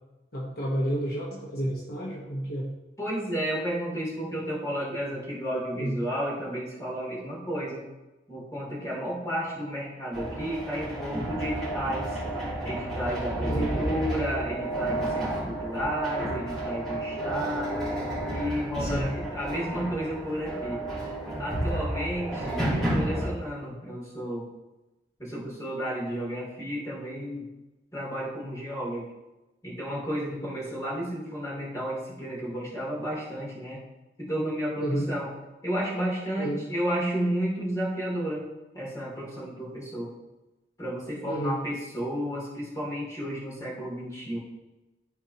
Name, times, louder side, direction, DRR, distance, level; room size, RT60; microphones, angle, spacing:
voice 1, 0.3-2.7 5.7-6.0 13.4-13.7 18.8-19.1 34.8-35.1 36.4-36.6 41.2-41.6, right 1 dB, 55° left, -3 dB, 1.2 m, -30 dB
voice 2, 3.0-7.8 8.3-12.2 12.6-17.9 18.3-21.1 21.4-24.5 25.2-27.5 27.9-29.1 29.6-33.8 34.2-35.3 35.6-38.4 38.7-40.1 40.8-44.4, equal, 15° left, -6 dB, 2.8 m, -32 dB
sound 1, 10.1-23.3, right 1 dB, ahead, 2.8 m, -31 dB
13.5 x 4.5 x 2.9 m, 1.1 s
head